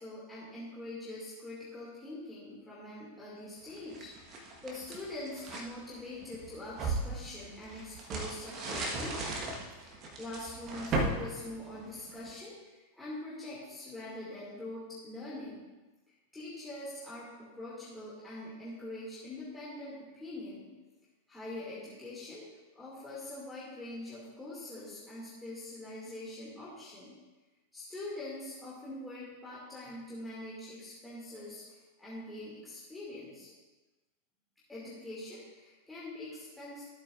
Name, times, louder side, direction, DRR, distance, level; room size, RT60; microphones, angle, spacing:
voice 1, 0.0-9.5 9.8-15.6 16.3-20.7 21.3-22.5 22.7-27.2 27.7-33.5 34.7-36.8, left 1 dB, 10° left, -9 dB, 2.4 m, -44 dB
sound 1, 3.7-5.7 6.2-12.3, right 2 dB, 35° right, 1.4 m, -37 dB
14.0 x 8.5 x 2.6 m, 1.2 s
figure-of-eight pair, 90°, 0 cm